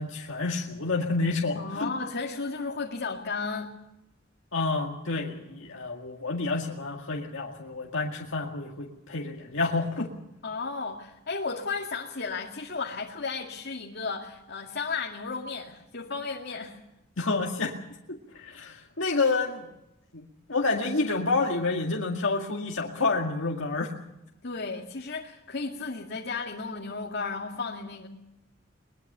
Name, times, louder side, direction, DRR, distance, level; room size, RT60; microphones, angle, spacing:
voice 1, 0.0-1.9 4.5-10.1 17.2-17.8 18.1-19.7 20.1-23.9, left 3 dB, 70° left, -1 dB, 2.1 m, -29 dB
voice 2, 1.5-3.7 10.4-16.8 24.4-28.1, left 4 dB, 55° left, 0 dB, 2.2 m, -34 dB
22.5 x 21.5 x 6.8 m, 0.91 s
head